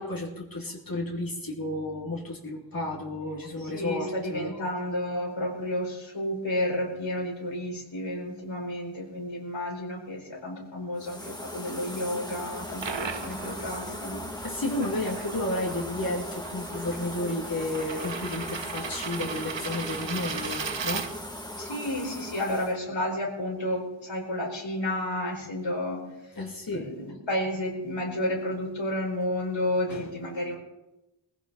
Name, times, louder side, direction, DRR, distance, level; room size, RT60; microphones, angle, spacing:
voice 1, 0.0-4.5 14.4-21.1 26.4-26.9 29.9-30.1, left 1 dB, 45° left, -2 dB, 2.5 m, -32 dB
voice 2, 3.7-14.2 21.6-26.3 26.7-30.6, left 1 dB, 70° left, 0 dB, 4.4 m, -31 dB
sound 1, 11.0-22.7, left 1 dB, 10° left, 2.2 m, -39 dB
sound 2, 12.5-21.5, right 6 dB, 70° right, 1.2 m, -37 dB
20.0 x 15.5 x 4.1 m, 0.98 s
wide cardioid pair, 70°, 47 cm